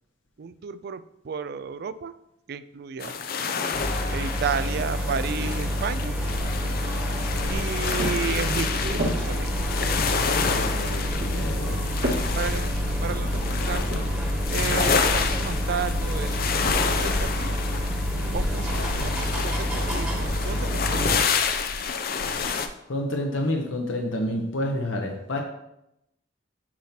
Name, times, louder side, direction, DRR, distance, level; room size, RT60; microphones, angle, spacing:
voice 1, 0.4-2.1 2.5-3.3 4.1-6.1 7.5-9.5 12.4-14.1 14.5-16.5 16.8-17.6 18.3-21.5, right 6 dB, 55° right, 13 dB, 0.4 m, -33 dB
sound 1, 3.0-22.7, left 5 dB, 50° left, 0.5 m, -29 dB
sound 2, 3.7-21.2, equal, 5° right, 1.4 m, -28 dB
sound 3, 6.8-14.9, equal, 70° right, 1.8 m, -36 dB
voice 2, 10.4-11.0 11.3-11.8 22.9-25.4, left 1 dB, 80° left, 2 dB, 0.9 m, -29 dB
8.6 x 2.9 x 5.8 m, 0.82 s
head